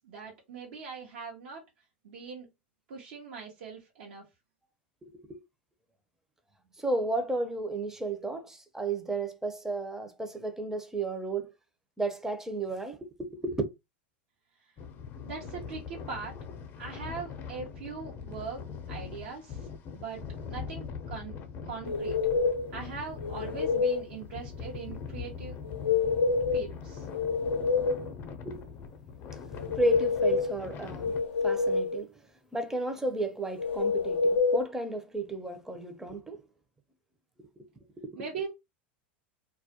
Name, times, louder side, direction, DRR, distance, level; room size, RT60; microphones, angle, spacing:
voice 1, 0.0-1.6 2.0-2.5 2.9-4.2 15.2-16.4 16.8-19.7 19.9-21.3 21.6-22.2 22.7-25.6 26.5-27.1 38.2-38.5, right 5 dB, 70° right, 0.8 m, -41 dB
voice 2, 5.0-5.4 6.8-11.5 12.0-13.7 28.4-28.6 29.7-31.1 31.4-32.1 32.5-36.4 37.4-37.7 38.0-38.2, right 2 dB, 10° right, 0.6 m, -33 dB
sound 1, 14.8-31.2, left 6 dB, 40° left, 0.5 m, -42 dB
sound 2, 21.9-22.7 23.2-24.1 25.6-26.6 27.0-28.1 29.5-30.6 31.0-32.0 33.6-34.6, left 4 dB, 85° left, 0.4 m, -27 dB
2.3 x 2.1 x 2.8 m
hypercardioid pair, 95°, 6 cm